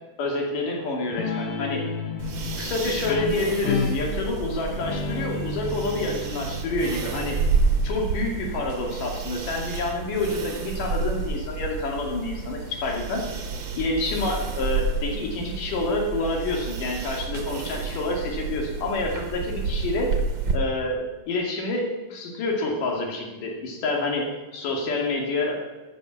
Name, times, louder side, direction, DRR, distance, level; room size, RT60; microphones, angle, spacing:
voice 1, 0.2-1.9 2.6-7.4 7.8-13.3 13.8-20.1 20.5-25.7, left 2 dB, 80° left, 0 dB, 4.0 m, -28 dB
Guitar, 1.1-8.3, left 5 dB, 60° left, 2.1 m, -32 dB
sound 1, 2.2-20.6, right 4 dB, 50° right, 1.8 m, -30 dB
14.0 x 8.3 x 7.0 m, 1.2 s
omnidirectional pair, 3.7 m